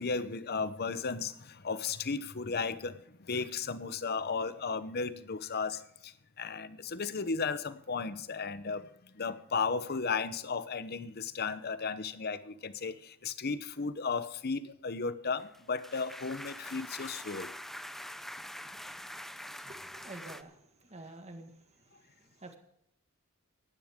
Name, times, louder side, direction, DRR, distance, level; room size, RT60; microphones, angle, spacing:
voice 1, 0.0-8.9 9.1-17.5, left 4 dB, 45° left, 13 dB, 0.8 m, -35 dB
sound 1, 15.4-20.4, equal, ahead, 0.6 m, -44 dB
voice 2, 19.6-21.5 21.9-22.6, right 2 dB, 30° right, 5 dB, 1.7 m, -49 dB
17.0 x 12.0 x 3.7 m, 0.74 s
head